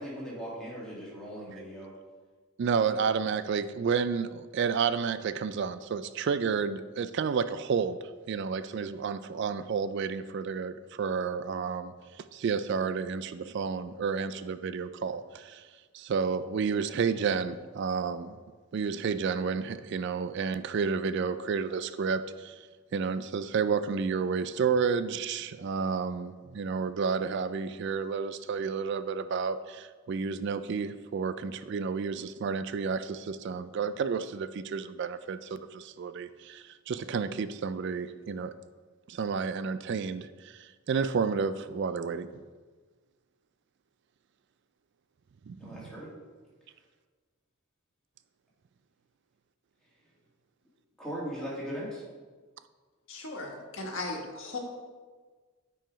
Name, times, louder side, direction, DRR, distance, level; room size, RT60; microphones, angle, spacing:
voice 1, 0.0-1.9 45.6-46.1 51.0-52.0, equal, 5° left, -7 dB, 2.3 m, -38 dB
voice 2, 2.6-8.0 8.3-15.7 15.9-18.4 18.7-22.6 22.9-38.5 39.1-42.3 45.5-45.9, right 5 dB, 55° right, 12 dB, 0.3 m, -31 dB
voice 3, 53.1-54.6, left 2 dB, 60° left, 0 dB, 1.5 m, -37 dB
9.0 x 4.7 x 5.1 m, 1.4 s
head